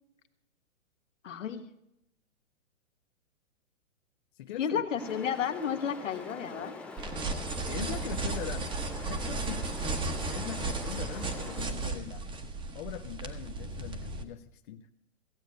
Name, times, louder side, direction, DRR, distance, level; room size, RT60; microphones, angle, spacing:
voice 1, 1.2-1.7 4.6-6.8, left 8 dB, 70° left, 7 dB, 1.6 m, -32 dB
voice 2, 4.4-4.8 7.6-9.7 10.3-12.3 12.7-14.9, left 12 dB, 40° left, 6 dB, 0.7 m, -41 dB
sound 1, 5.0-11.6, left 3 dB, 5° left, 0.5 m, -44 dB
sound 2, 7.0-14.2, right 3 dB, 15° right, 1.0 m, -35 dB
15.5 x 8.3 x 6.5 m, 0.80 s
hypercardioid pair, 135°, 39 cm